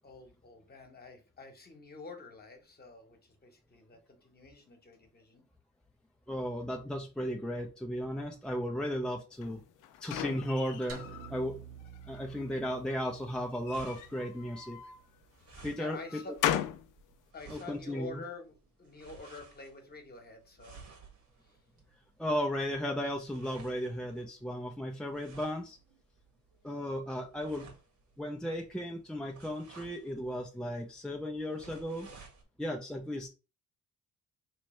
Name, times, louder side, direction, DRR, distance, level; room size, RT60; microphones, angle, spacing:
voice 1, 0.0-5.4 15.4-16.3 17.3-20.8 21.4-21.6, left 3 dB, 30° left, 4 dB, 1.1 m, -48 dB
voice 2, 6.3-9.6 10.0-11.6 12.1-14.8 15.6-16.2 17.5-18.2 22.2-25.8 26.6-27.7 28.2-32.1 32.6-33.3, equal, 5° left, 1 dB, 0.5 m, -35 dB
sound 1, 9.4-11.3 11.8-12.5 13.5-15.0 15.6-16.9, left 11 dB, 85° left, 0.5 m, -37 dB
sound 2, 10.9-15.3, right 7 dB, 45° right, 0.7 m, -51 dB
sound 3, 13.1-32.4, right 4 dB, 65° right, 1.5 m, -57 dB
3.3 x 3.1 x 3.2 m, 0.31 s
cardioid pair, 90°, 30 cm